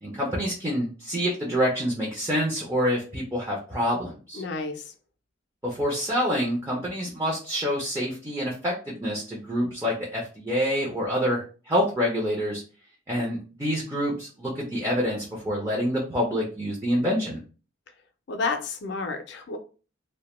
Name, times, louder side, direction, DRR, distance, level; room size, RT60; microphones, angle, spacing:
voice 1, 0.0-4.4 5.6-12.6 13.1-17.4, equal, 15° right, -4 dB, 0.5 m, -27 dB
voice 2, 4.3-4.9 18.3-19.6, left 3 dB, 60° left, 6 dB, 0.4 m, -30 dB
2.1 x 2.1 x 2.9 m, 0.36 s
head